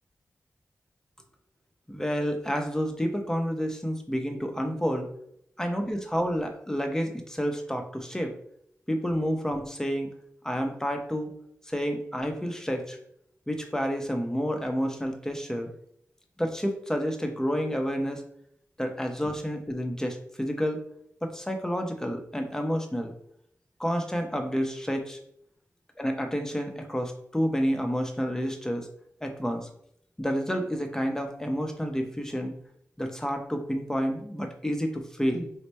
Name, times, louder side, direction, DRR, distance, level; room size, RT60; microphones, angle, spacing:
voice 1, 1.9-5.1 5.6-8.3 8.9-10.1 10.4-11.3 11.7-13.0 13.5-15.7 16.4-18.2 18.8-20.8 21.2-23.1 23.8-25.2 26.0-28.9 29.2-29.7 30.2-32.5 33.0-35.5, equal, 10° left, 4 dB, 0.7 m, -29 dB
3.2 x 2.1 x 4.1 m, 0.70 s
cardioid pair, 55°, 6 cm